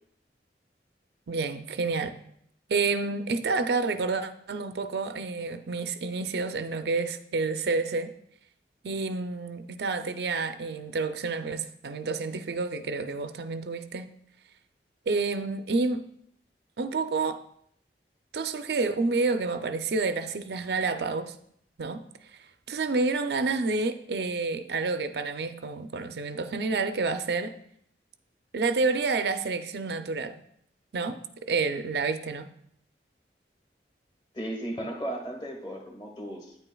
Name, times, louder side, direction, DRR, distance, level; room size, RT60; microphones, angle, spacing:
voice 1, 1.3-2.1 2.7-8.1 8.8-14.1 15.1-16.0 16.8-17.4 18.3-21.3 21.8-22.0 22.3-22.4 22.7-27.5 28.5-30.4 30.9-31.2 31.5-32.5, right 3 dB, 65° right, 9 dB, 0.5 m, -29 dB
voice 2, 34.3-36.6, right 1 dB, 25° left, 2 dB, 1.4 m, -35 dB
9.4 x 8.8 x 2.3 m, 0.69 s
head